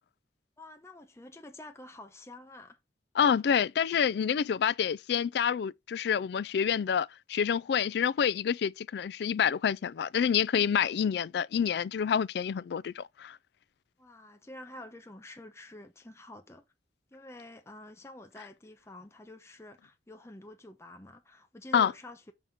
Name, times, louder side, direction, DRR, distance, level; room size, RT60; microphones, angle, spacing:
voice 1, 0.6-2.8 14.0-16.6 17.1-22.3, left 1 dB, 15° left, 0.7 m, -48 dB
voice 2, 3.2-13.4 21.7-21.9, left 7 dB, 65° left, 0.3 m, -28 dB
5.8 x 5.7 x 3.6 m
head